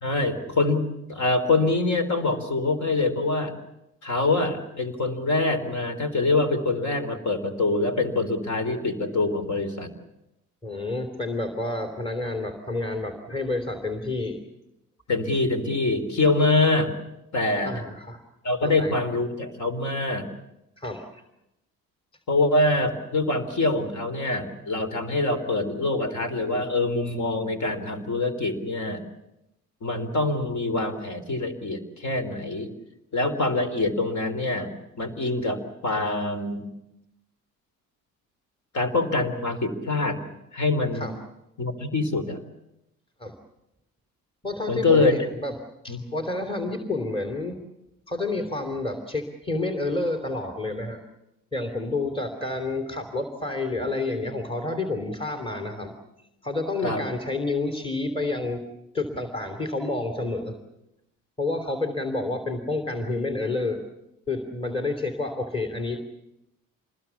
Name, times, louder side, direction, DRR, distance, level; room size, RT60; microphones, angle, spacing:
voice 1, 0.0-3.6 4.0-9.9 15.1-16.9 17.3-17.7 18.4-20.3 22.3-29.0 29.8-32.7 33.1-34.7 35.0-36.7 38.7-40.2 40.5-41.1 41.6-42.4 44.7-45.2 45.9-46.0 56.8-57.1, left 2 dB, 50° left, 10 dB, 3.9 m, -25 dB
voice 2, 10.6-14.4 17.6-18.2 18.6-18.9 20.8-21.2 40.9-41.2 43.2-43.4 44.4-45.5 45.8-47.6 48.1-51.0 51.5-55.9 56.4-58.6 58.9-60.6 61.4-63.8 64.3-66.0, left 2 dB, 15° left, 6 dB, 3.2 m, -29 dB
27.0 x 20.5 x 7.2 m, 0.87 s
supercardioid pair, 65°, 36 cm